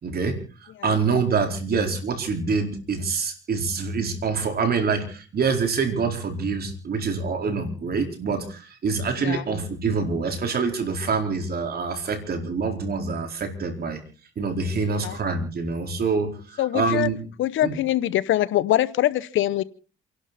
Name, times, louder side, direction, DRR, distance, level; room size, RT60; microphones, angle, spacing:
voice 1, 0.0-14.0 14.4-17.2 17.6-17.8, right 4 dB, 50° right, 5 dB, 4.4 m, -26 dB
voice 2, 14.9-15.2 16.6-17.1 17.4-19.6, left 13 dB, 75° left, 18 dB, 0.9 m, -23 dB
28.5 x 11.5 x 4.2 m, 0.37 s
cardioid pair, 90°, 20 cm